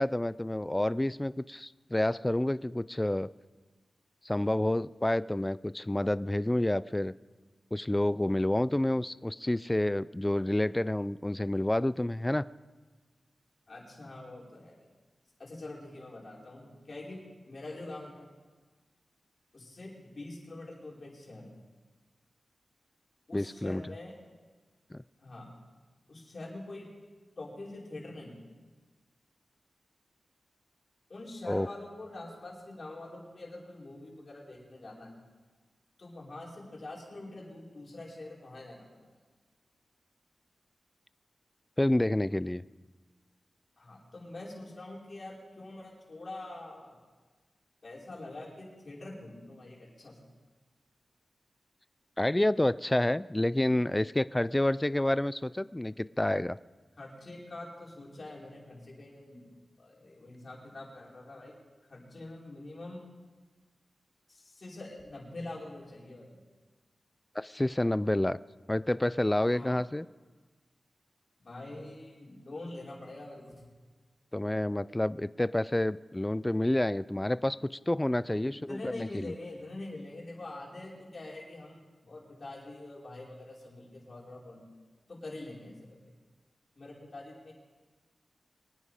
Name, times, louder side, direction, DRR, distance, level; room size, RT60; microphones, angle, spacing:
voice 1, 0.0-3.3 4.2-7.1 7.7-12.5 23.3-23.9 24.9-25.0 31.4-31.7 41.8-42.6 52.2-56.6 67.4-68.4 68.7-70.1 74.3-77.6 77.9-79.3, left 1 dB, 15° left, 18 dB, 0.3 m, -29 dB
voice 2, 13.7-14.8 15.4-18.3 19.5-21.5 23.3-24.1 25.2-25.5 26.1-26.9 27.4-28.4 31.1-35.1 36.0-38.8 43.8-47.0 47.8-50.2 57.0-59.5 59.8-61.5 61.9-63.1 64.3-66.3 69.5-69.8 71.4-73.6 78.4-84.6 85.1-86.0 86.8-87.5, left 2 dB, 50° left, -4 dB, 4.9 m, -45 dB
23.5 x 9.8 x 5.0 m, 1.3 s
cardioid pair, 65°, 0 cm